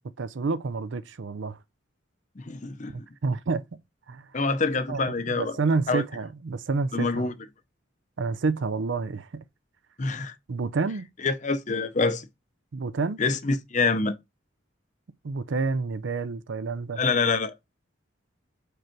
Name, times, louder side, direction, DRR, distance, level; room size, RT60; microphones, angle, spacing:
voice 1, 0.2-1.6 2.9-3.8 4.1-4.3 4.9-5.0 5.3-7.3 8.2-9.4 10.5-11.1 12.7-13.2 15.2-17.0, right 4 dB, 70° right, 0.5 m, -29 dB
voice 2, 2.4-3.1 4.3-5.5 5.9-6.0 6.9-7.3 10.0-10.3 11.2-12.3 13.2-14.1 17.0-17.5, left 4 dB, 40° left, 0.6 m, -26 dB
5.1 x 4.6 x 4.5 m
head